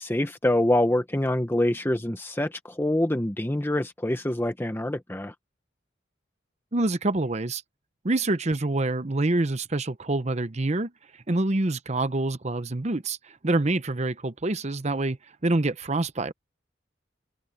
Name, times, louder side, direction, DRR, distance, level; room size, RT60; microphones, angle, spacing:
voice 1, 0.0-5.3, left 1 dB, 10° left, 0.9 m, -25 dB
voice 2, 6.7-7.6 8.0-10.9 11.3-15.2 15.4-16.3, right 2 dB, 35° right, 0.9 m, -26 dB
head